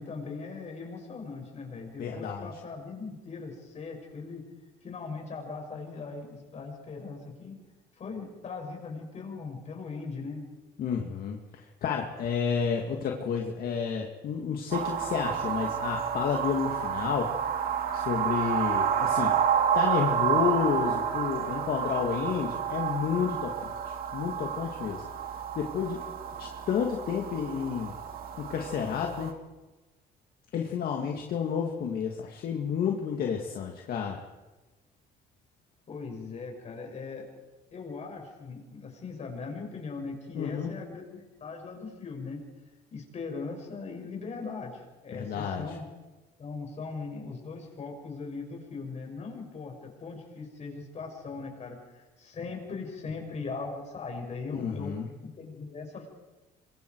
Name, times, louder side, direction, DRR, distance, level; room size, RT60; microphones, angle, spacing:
voice 1, 0.0-4.4 4.8-7.6 8.0-10.5 35.9-37.3 37.7-42.4 42.9-45.8 46.4-56.1, left 4 dB, 40° left, 1 dB, 6.6 m, -39 dB
voice 2, 2.0-2.5 10.8-17.3 17.9-19.4 19.7-25.0 25.5-26.0 26.4-27.9 28.4-29.3 30.5-34.2 40.3-40.7 45.1-45.8 54.5-55.1, left 7 dB, 60° left, 1 dB, 2.2 m, -31 dB
sound 1, 14.7-29.3, right 8 dB, 60° right, 2.2 m, -30 dB
27.0 x 23.0 x 4.8 m, 1.1 s
cardioid pair, 110°, 17 cm